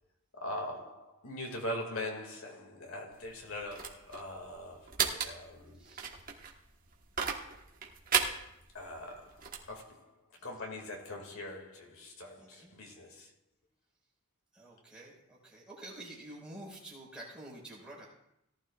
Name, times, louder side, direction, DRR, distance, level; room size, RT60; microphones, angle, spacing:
voice 1, 0.3-4.9 5.2-5.9 8.7-10.1 10.4-13.3, left 1 dB, 70° left, 2.3 m, -42 dB
sound 1, 3.1-9.7, right 7 dB, 40° right, 1.3 m, -36 dB
voice 2, 5.8-6.2 10.4-10.5 12.4-12.7 14.5-18.1, right 1 dB, 5° right, 5.1 m, -49 dB
18.0 x 12.0 x 2.4 m
head